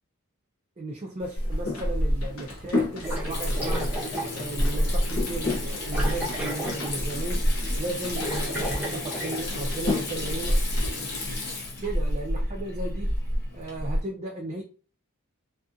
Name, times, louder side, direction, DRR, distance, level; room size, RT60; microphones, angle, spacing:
voice 1, 0.8-3.9 4.3-7.4 7.8-10.6 11.8-13.1 13.5-14.6, right 2 dB, 30° right, -1 dB, 0.4 m, -35 dB
sound 1, 1.2-10.9, left 3 dB, 80° left, 0.8 m, -35 dB
Water tap faucet / Sink (filling or washing), 1.4-14.0, equal, 45° left, 0.8 m, -29 dB
sound 2, 3.0-4.5 4.9-5.0 5.9-7.1 7.4-7.6 7.9-9.5, right 1 dB, 5° right, 0.9 m, -33 dB
2.6 x 2.4 x 2.4 m, 0.37 s
head